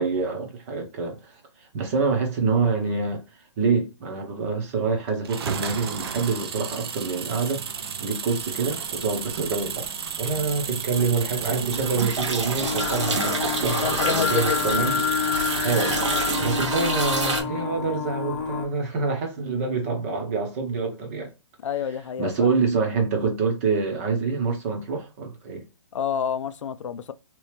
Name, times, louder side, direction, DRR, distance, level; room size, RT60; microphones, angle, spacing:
voice 1, 0.0-1.4 1.7-3.2 3.6-7.7 8.0-15.0 15.6-16.0 16.4-21.3 22.2-25.6, right 4 dB, 30° right, 0.9 m, -26 dB
sound 1, 5.2-16.6, right 7 dB, 55° right, 0.5 m, -32 dB
sound 2, 9.3-9.9 10.2-17.4, right 3 dB, 70° right, 1.1 m, -29 dB
Singing, 12.6-18.7, left 7 dB, 25° left, 0.7 m, -28 dB
voice 2, 13.8-14.7 21.6-22.5 25.9-27.1, left 8 dB, 85° left, 0.4 m, -28 dB
3.0 x 2.7 x 3.3 m
hypercardioid pair, 165°, 16 cm